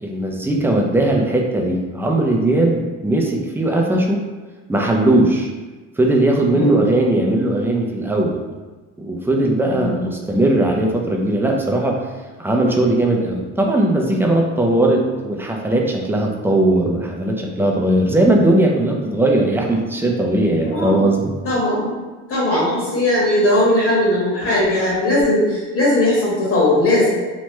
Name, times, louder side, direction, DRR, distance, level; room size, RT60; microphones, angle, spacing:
voice 1, 0.0-4.2 4.7-5.5 6.0-8.4 9.0-12.0 12.4-21.3, right 1 dB, 5° right, 0 dB, 0.4 m, -18 dB
voice 2, 6.5-6.8 9.7-10.0 20.7-21.1 21.4-22.0 22.3-27.1, left 1 dB, 50° left, -6 dB, 1.4 m, -18 dB
3.0 x 2.2 x 3.1 m, 1.3 s
cardioid pair, 90°, 30 cm